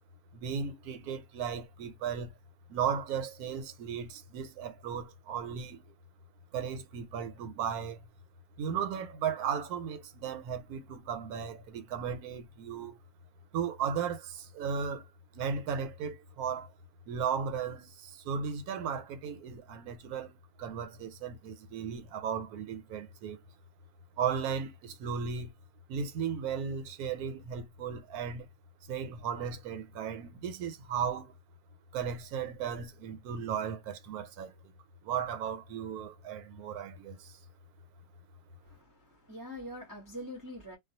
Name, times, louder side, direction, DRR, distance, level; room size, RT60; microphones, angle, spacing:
voice 1, 0.3-2.3 2.7-5.8 6.5-8.0 8.6-13.0 13.5-15.1 15.3-16.7 17.1-23.4 24.2-25.5 25.9-28.5 28.9-31.3 31.9-34.7 35.0-37.4, right 7 dB, 80° right, 1.1 m, -36 dB
voice 2, 38.6-40.8, equal, 20° right, 0.6 m, -44 dB
2.4 x 2.2 x 2.7 m
omnidirectional pair, 1.6 m